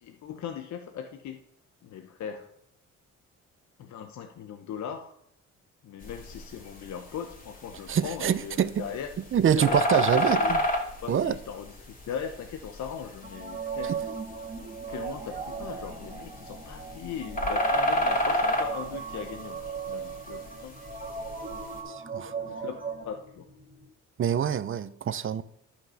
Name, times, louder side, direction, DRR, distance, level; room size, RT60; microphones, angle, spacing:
voice 1, 0.0-1.4 1.8-2.5 3.8-5.1 5.8-9.1 9.4-10.6 11.0-13.9 14.9-20.8 22.4-23.5, left 7 dB, 65° left, 0.9 m, -39 dB
sound 1, 6.0-21.8, left 1 dB, 25° left, 2.8 m, -32 dB
voice 2, 7.9-8.8 9.3-10.6 11.1-11.3 13.8-14.0 21.8-22.3 24.2-25.4, right 9 dB, 45° right, 0.6 m, -25 dB
sound 2, 13.2-23.0, right 6 dB, 30° right, 1.7 m, -37 dB
sound 3, 15.1-23.9, left 1 dB, 90° left, 4.7 m, -55 dB
12.0 x 5.7 x 5.6 m
cardioid pair, 90°, 30 cm